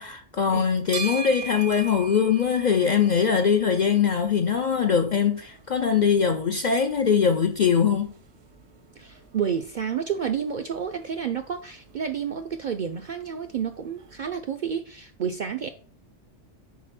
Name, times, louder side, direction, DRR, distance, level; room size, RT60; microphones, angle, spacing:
voice 1, 0.0-8.1, left 7 dB, 55° left, 0.5 m, -22 dB
sound 1, 0.5-14.4, right 6 dB, 80° right, 1.3 m, -43 dB
voice 2, 9.0-15.7, right 7 dB, 60° right, 0.5 m, -30 dB
4.8 x 4.0 x 5.8 m
omnidirectional pair, 1.3 m